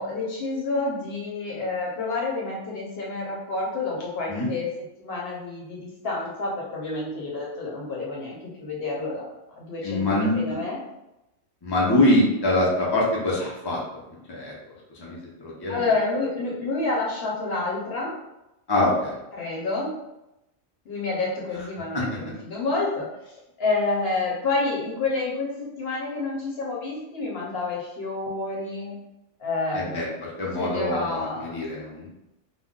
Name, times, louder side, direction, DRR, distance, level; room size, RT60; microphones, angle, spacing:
voice 1, 0.0-4.7 5.0-10.8 15.7-18.1 19.3-19.9 20.8-23.1 23.6-28.9 29.4-30.1 30.4-31.7, left 3 dB, 60° left, -4 dB, 1.0 m, -29 dB
voice 2, 9.8-10.6 11.6-13.8 14.3-14.5 15.0-15.8 18.7-19.1 21.9-22.0 29.7-30.1 30.4-32.1, left 1 dB, 30° left, -4 dB, 0.5 m, -24 dB
2.4 x 2.2 x 3.6 m, 0.90 s
omnidirectional pair, 1.2 m